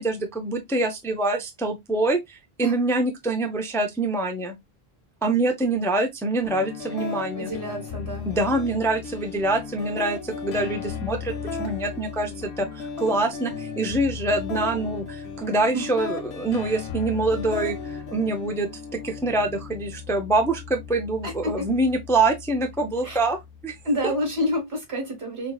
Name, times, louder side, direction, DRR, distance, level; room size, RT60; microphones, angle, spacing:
voice 1, 0.0-4.6 5.2-7.5 8.3-11.3 11.6-23.4 23.6-23.7 24.0-24.1, right 2 dB, 5° left, 0.3 m, -25 dB
sound 1, 6.5-24.4, left 5 dB, 85° left, 1.0 m, -36 dB
voice 2, 7.4-8.3 15.7-15.9 21.2-21.7 23.0-23.2 23.8-25.5, equal, 85° right, 1.9 m, -28 dB
5.1 x 2.0 x 2.3 m
omnidirectional pair, 1.0 m